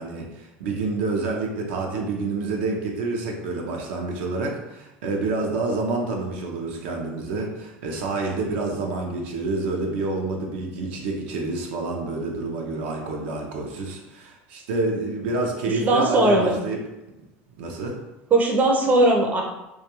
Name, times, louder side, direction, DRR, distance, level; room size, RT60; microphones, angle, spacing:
voice 1, 0.0-16.8 17.6-18.0, right 3 dB, 80° right, 0 dB, 0.5 m, -28 dB
voice 2, 15.7-16.6 18.3-19.4, right 2 dB, 30° right, 1 dB, 0.5 m, -19 dB
2.3 x 2.2 x 2.8 m, 0.93 s
supercardioid pair, 110°, 6 cm